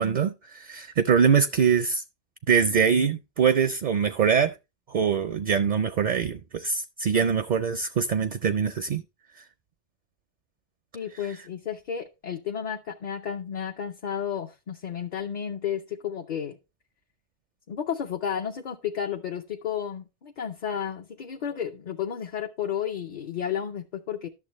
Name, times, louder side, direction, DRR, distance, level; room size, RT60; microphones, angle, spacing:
voice 1, 0.0-2.0 2.5-4.5 4.9-9.0, right 7 dB, 55° right, 0.6 m, -23 dB
voice 2, 10.9-16.6 17.7-24.3, left 8 dB, 50° left, 0.7 m, -32 dB
11.5 x 6.9 x 3.0 m
omnidirectional pair, 1.1 m